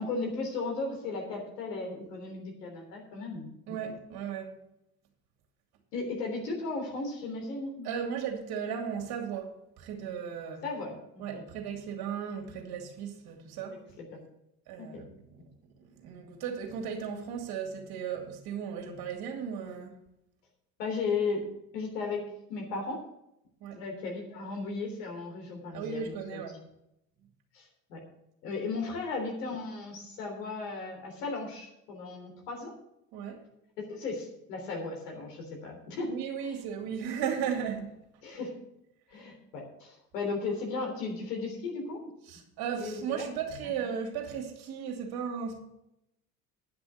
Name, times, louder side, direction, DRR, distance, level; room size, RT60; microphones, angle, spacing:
voice 1, 0.0-3.5 5.9-7.9 10.6-11.4 14.0-14.1 14.8-15.0 20.8-21.4 21.7-22.2 22.5-23.0 23.7-26.4 27.5-28.0 28.4-32.7 33.8-36.1 36.4-36.6 38.2-38.5 39.1-42.1 42.7-43.3 43.6-43.7, left 3 dB, 75° left, 3.5 m, -35 dB
voice 2, 3.7-4.6 7.8-10.6 11.2-13.8 14.7-15.1 15.9-20.0 23.6-23.8 25.7-26.6 33.1-33.4 36.1-38.0 42.3-45.6, right 7 dB, 50° right, 2.7 m, -36 dB
10.0 x 6.1 x 8.1 m
hypercardioid pair, 75°, 47 cm